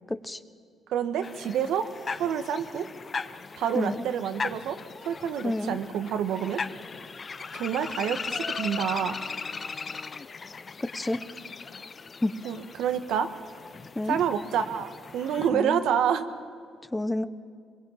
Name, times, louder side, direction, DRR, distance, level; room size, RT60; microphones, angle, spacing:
voice 1, 0.1-0.4 3.7-4.0 5.4-5.8 10.9-11.2 12.2-12.3 14.0-14.2 15.5-15.8 16.9-17.2, left 1 dB, 15° left, 12 dB, 1.0 m, -29 dB
voice 2, 0.9-1.9 2.1-2.9 3.6-4.8 5.0-6.6 7.5-9.2 12.4-13.3 14.1-16.3, right 8 dB, 85° right, 8 dB, 1.4 m, -28 dB
sound 1, 1.2-15.5, left 4 dB, 35° left, 0.8 m, -38 dB
23.0 x 22.5 x 8.8 m, 2.1 s
cardioid pair, 90°, 0 cm